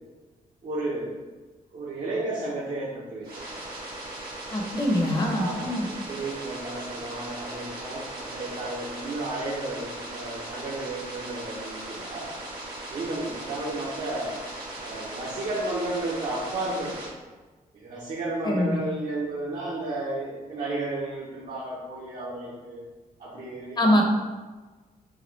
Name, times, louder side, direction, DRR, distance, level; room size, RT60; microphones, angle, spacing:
voice 1, 0.6-1.2 1.7-3.6 5.3-12.3 12.9-14.4 14.8-17.1 17.7-22.8 23.2-24.0, right 2 dB, 65° right, -8 dB, 1.2 m, -33 dB
sound 1, 3.2-17.1, right 1 dB, 85° right, 1.4 m, -38 dB
voice 2, 4.5-5.9 18.4-18.8 23.8-24.0, left 1 dB, 30° left, 0 dB, 0.9 m, -23 dB
5.9 x 2.4 x 3.3 m, 1.3 s
cardioid pair, 100°, 15 cm